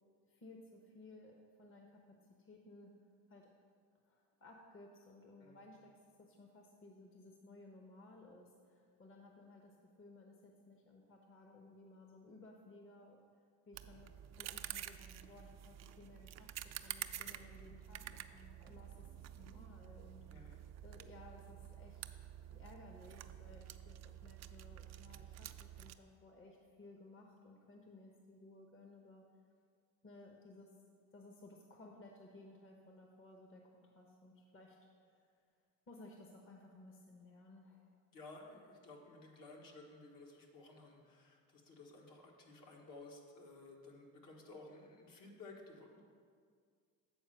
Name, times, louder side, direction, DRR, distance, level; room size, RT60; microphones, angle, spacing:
voice 1, 0.2-2.0 2.4-2.9 3.3-3.5 4.0-5.9 6.2-13.2 13.7-16.5 16.8-20.2 20.8-22.0 22.5-29.2 30.0-30.7 31.1-34.8 35.0-35.3 35.9-37.9, left 2 dB, 35° left, 1 dB, 1.0 m, -58 dB
sound 1, 13.7-25.9, right 12 dB, 45° right, 0.4 m, -50 dB
voice 2, 20.3-20.6 38.1-46.0, left 2 dB, 60° left, 0 dB, 1.6 m, -55 dB
8.1 x 4.4 x 6.3 m, 2.1 s
supercardioid pair, 80°, 38 cm